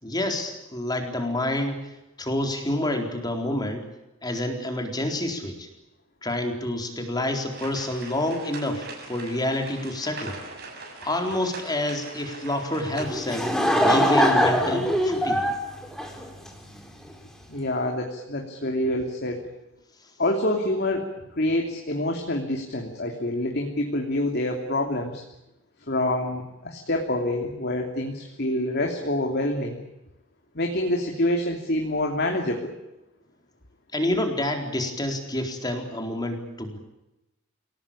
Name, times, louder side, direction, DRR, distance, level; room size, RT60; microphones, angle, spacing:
voice 1, 0.0-1.8 2.2-3.9 4.2-5.7 6.2-10.4 11.0-13.5 13.8-15.5 33.9-36.8, left 1 dB, 20° left, 4 dB, 4.1 m, -28 dB
sound 1, 7.5-13.1, right 3 dB, 50° right, 7.0 m, -41 dB
Laughter / Crowd, 13.0-16.8, equal, ahead, 3.6 m, -22 dB
voice 2, 17.5-19.4 20.2-21.1 21.4-25.2 25.9-29.8 30.5-32.8, left 1 dB, 50° left, 2 dB, 3.0 m, -26 dB
28.0 x 18.0 x 8.8 m, 0.95 s
head